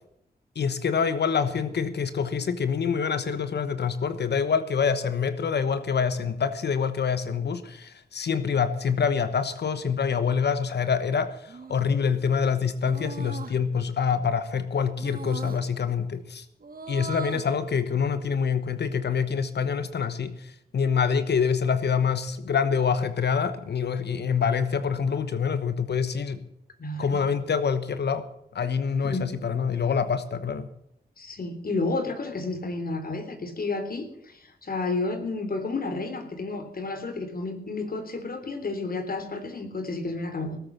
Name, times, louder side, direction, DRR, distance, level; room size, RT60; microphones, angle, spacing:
voice 1, 0.5-16.4 16.9-26.4 27.0-28.3 28.5-30.7, left 6 dB, 85° left, 12 dB, 1.1 m, -26 dB
sound 1, 11.5-12.0 12.9-13.5 15.0-15.6 16.6-17.5, right 5 dB, 60° right, 1.8 m, -39 dB
voice 2, 26.8-27.3 29.0-29.3 31.2-40.6, left 3 dB, 60° left, 7 dB, 3.4 m, -31 dB
18.5 x 8.2 x 7.2 m, 0.75 s
cardioid pair, 60°, 17 cm